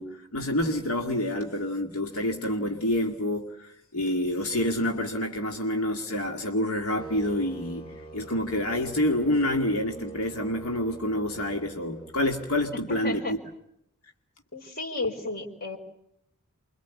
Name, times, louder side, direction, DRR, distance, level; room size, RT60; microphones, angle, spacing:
voice 1, 0.0-13.4, left 1 dB, 75° left, 3 dB, 2.2 m, -28 dB
sound 1, 7.0-13.1, right 5 dB, 25° left, 3.5 m, -45 dB
voice 2, 12.9-13.3 14.5-15.8, left 3 dB, 45° left, 5 dB, 4.5 m, -32 dB
29.0 x 24.0 x 8.4 m, 0.77 s
head